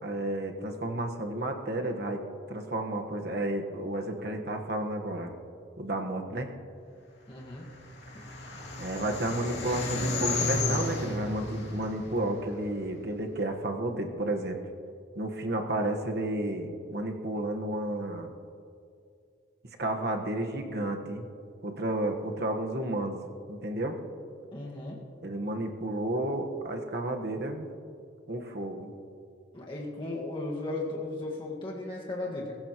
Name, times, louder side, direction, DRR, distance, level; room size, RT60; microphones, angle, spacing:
voice 1, 0.0-2.2 2.5-5.3 5.8-6.5 8.8-14.6 15.1-18.3 19.8-21.3 21.6-23.2 23.5-24.0 25.2-27.7 28.3-28.9, right 1 dB, 55° right, 3 dB, 1.3 m, -32 dB
voice 2, 7.3-7.7 24.5-25.0 29.5-32.6, left 2 dB, 25° left, -3 dB, 1.7 m, -36 dB
sound 1, 7.6-13.0, left 2 dB, 60° left, 2.7 m, -33 dB
22.5 x 15.0 x 3.0 m, 2.4 s
head